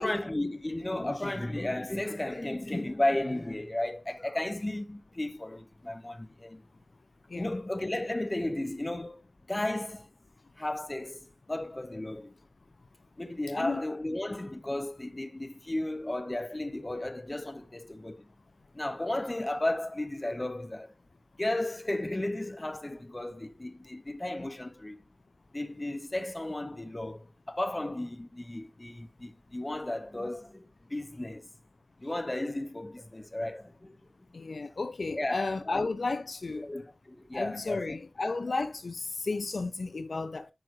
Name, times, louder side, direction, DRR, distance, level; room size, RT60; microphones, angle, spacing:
voice 1, 0.0-6.6 7.3-9.2 9.5-10.1 10.6-11.2 11.5-12.3 13.2-18.3 18.7-20.9 21.4-25.0 25.5-31.5 32.0-34.0 35.1-35.9 36.5-38.0, left 1 dB, 25° left, 1.0 m, -34 dB
voice 2, 34.3-36.7 37.3-40.5, left 3 dB, 60° left, 0.9 m, -33 dB
9.8 x 6.0 x 2.2 m
cardioid pair, 50°, 0 cm